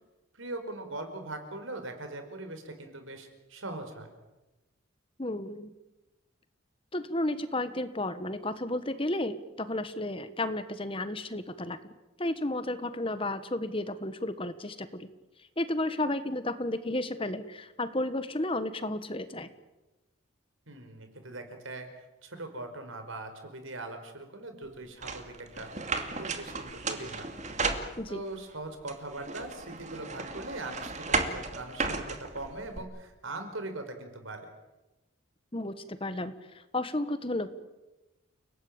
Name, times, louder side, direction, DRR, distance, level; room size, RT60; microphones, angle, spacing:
voice 1, 0.3-4.1 20.7-21.9 22.2-25.7 26.2-27.3 28.1-34.5, right 2 dB, 80° right, 6 dB, 5.0 m, -41 dB
voice 2, 5.2-5.7 6.9-11.9 12.2-15.1 15.6-19.5 28.0-28.2 35.5-37.5, left 1 dB, 25° left, 12 dB, 1.4 m, -33 dB
sound 1, 25.0-28.4 28.9-32.8, right 4 dB, 35° right, 2.5 m, -34 dB
30.0 x 19.0 x 8.9 m, 1.0 s
head